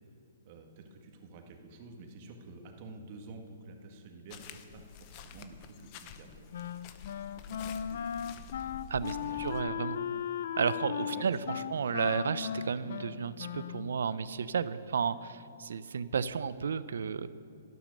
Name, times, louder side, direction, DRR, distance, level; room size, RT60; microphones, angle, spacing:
voice 1, 0.4-6.9 7.3-8.6 9.2-9.5 11.1-11.9, right 3 dB, 40° right, 3 dB, 1.9 m, -50 dB
sound 1, 4.3-9.6, left 7 dB, 35° left, 0.9 m, -49 dB
Wind instrument woodwind instrument, 6.5-14.0, left 8 dB, 60° left, 0.6 m, -37 dB
voice 2, 8.9-10.0 10.6-11.4 11.7-17.3, right 6 dB, 75° right, 15 dB, 0.6 m, -32 dB
12.0 x 12.0 x 6.5 m, 2.6 s
hypercardioid pair, 150°, 0 cm